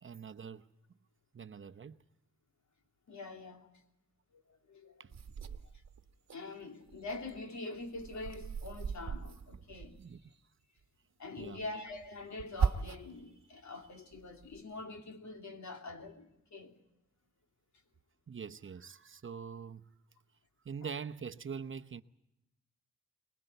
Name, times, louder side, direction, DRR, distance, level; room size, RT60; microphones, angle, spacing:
voice 1, 0.0-0.7 1.3-2.0 5.0-5.1 5.4-5.6 10.0-10.2 11.4-11.7 18.3-19.9 20.6-22.0, right 6 dB, 40° right, 0.8 m, -44 dB
voice 2, 3.1-3.7 4.7-4.9 6.3-10.0 11.2-16.7, left 2 dB, 70° left, 3.0 m, -44 dB
sound 1, 5.1-6.4 6.8-10.3 11.4-13.2 13.7-14.6, right 6 dB, 60° right, 1.2 m, -39 dB
23.5 x 21.0 x 8.0 m
wide cardioid pair, 135°, 30 cm